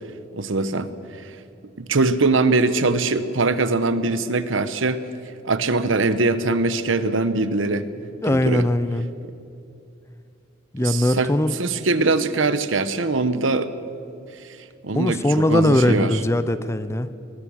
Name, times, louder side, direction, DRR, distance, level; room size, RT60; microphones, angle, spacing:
voice 1, 0.3-0.9 1.8-5.0 5.4-7.9 8.3-8.7 10.8-11.3 11.6-13.7 14.8-16.2, right 3 dB, 70° right, 12 dB, 1.0 m, -22 dB
voice 2, 8.2-9.1 10.7-11.6 14.9-17.1, left 1 dB, 15° left, 13 dB, 0.6 m, -20 dB
22.0 x 19.5 x 6.4 m, 2.6 s
head